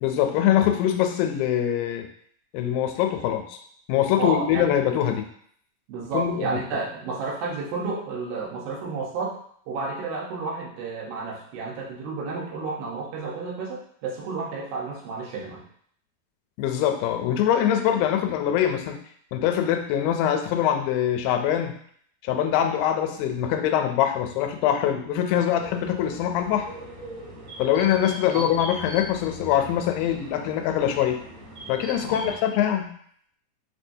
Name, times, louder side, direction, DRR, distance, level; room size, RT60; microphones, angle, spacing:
voice 1, 0.0-2.1 2.5-3.6 3.9-5.2 6.1-6.6 16.6-19.0 19.3-21.7 22.2-26.7 27.6-31.2 31.7-32.9, left 10 dB, 90° left, 6 dB, 2.3 m, -23 dB
voice 2, 4.2-4.8 5.9-9.4 9.7-15.7 28.3-28.5 32.0-32.4, right 4 dB, 90° right, -3 dB, 2.8 m, -31 dB
sound 1, 25.6-32.3, right 1 dB, 60° right, 1.7 m, -40 dB
6.0 x 3.3 x 2.7 m, 0.64 s
omnidirectional pair, 4.0 m